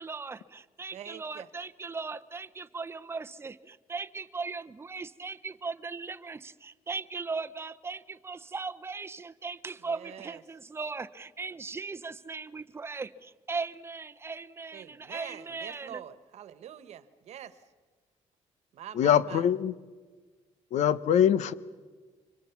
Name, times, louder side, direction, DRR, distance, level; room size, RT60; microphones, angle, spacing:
voice 1, 0.0-16.0, right 4 dB, 20° right, 12 dB, 0.8 m, -38 dB
voice 2, 0.9-1.5 9.8-10.4 14.7-17.6 18.7-19.5, right 10 dB, 65° right, 13 dB, 1.4 m, -45 dB
voice 3, 18.9-19.7 20.7-21.5, left 9 dB, 75° left, 15 dB, 1.1 m, -23 dB
29.5 x 25.5 x 6.0 m, 1.4 s
cardioid pair, 140°, 12 cm